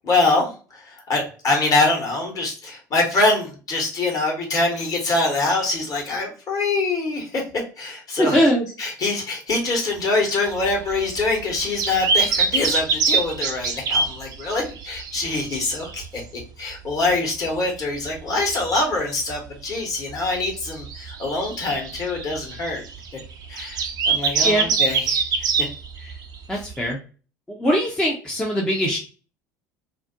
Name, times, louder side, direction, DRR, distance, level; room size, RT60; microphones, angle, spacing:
voice 1, 0.0-8.4 8.8-22.8 23.5-25.2 25.6-25.7 26.0-26.1, left 2 dB, 35° left, 1 dB, 1.0 m, -24 dB
voice 2, 8.2-8.7 24.4-24.7 26.5-27.0 27.5-29.0, equal, 5° left, -2 dB, 0.5 m, -21 dB
sound 1, 10.5-16.4 16.7-16.8 17.1-17.2 17.5-17.6 18.1-19.0 19.3-19.4 20.1-26.8, right 5 dB, 40° right, 0.5 m, -25 dB
2.4 x 2.0 x 2.5 m, 0.36 s
figure-of-eight pair, 70°, 10 cm